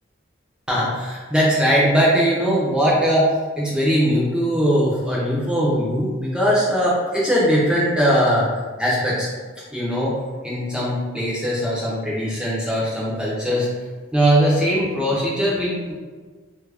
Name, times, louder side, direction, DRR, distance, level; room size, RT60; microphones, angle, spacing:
voice 1, 0.7-8.5 8.8-9.3 9.7-10.1 10.4-13.7 14.1-15.9, equal, 5° right, -6 dB, 0.5 m, -20 dB
2.9 x 2.3 x 3.3 m, 1.4 s
head